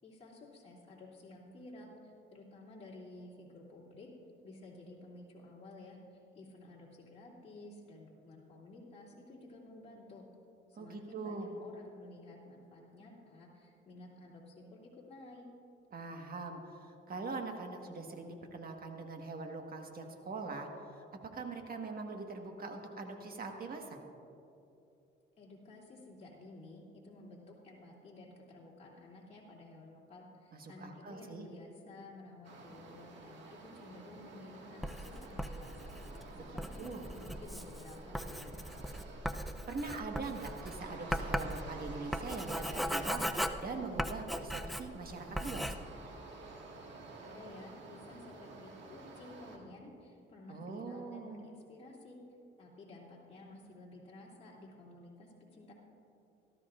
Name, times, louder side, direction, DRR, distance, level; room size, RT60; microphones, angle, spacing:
voice 1, 0.0-4.1 4.4-10.2 10.8-15.5 25.4-36.2 36.5-38.6 47.2-52.2 52.6-55.7, left 2 dB, 30° left, -5 dB, 2.9 m, -53 dB
voice 2, 10.7-11.5 15.9-21.0 21.3-24.0 30.5-31.5 36.4-36.5 36.8-37.0 39.7-45.8 50.5-51.4, right 3 dB, 50° right, 3 dB, 1.6 m, -42 dB
sound 1, 32.4-49.6, right 2 dB, 70° right, 1.8 m, -51 dB
Writing, 34.8-45.1 45.3-45.7, equal, ahead, 0.5 m, -38 dB
17.5 x 13.5 x 2.5 m, 2.8 s
cardioid pair, 90°, 20 cm